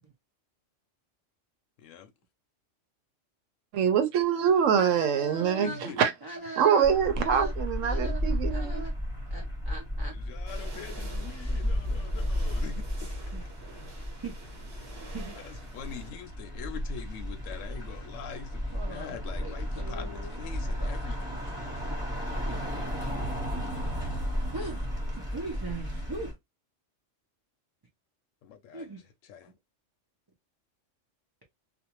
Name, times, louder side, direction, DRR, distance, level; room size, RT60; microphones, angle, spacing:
voice 1, 1.8-2.1 5.6-6.0 10.1-12.8 15.4-21.2 28.4-28.9 29.2-29.5, left 8 dB, 80° left, 0.9 m, -43 dB
voice 2, 3.7-6.1 6.6-8.8, right 7 dB, 90° right, 1.0 m, -24 dB
voice 3, 4.7-5.9 6.2-6.9 7.2-7.5 7.8-8.2 8.5-8.9 9.3-10.1 13.3-13.4 14.2-14.3 15.1-15.4 18.7-20.4 20.8-20.9 21.3-21.4 21.6-21.9 22.3-22.7 24.5-26.3 28.7-29.0, right 3 dB, 30° right, 0.4 m, -40 dB
sound 1, 6.8-26.3, equal, 5° right, 1.1 m, -33 dB
sound 2, 10.5-16.1, right 1 dB, 55° right, 1.3 m, -46 dB
2.5 x 2.2 x 2.8 m
omnidirectional pair, 1.3 m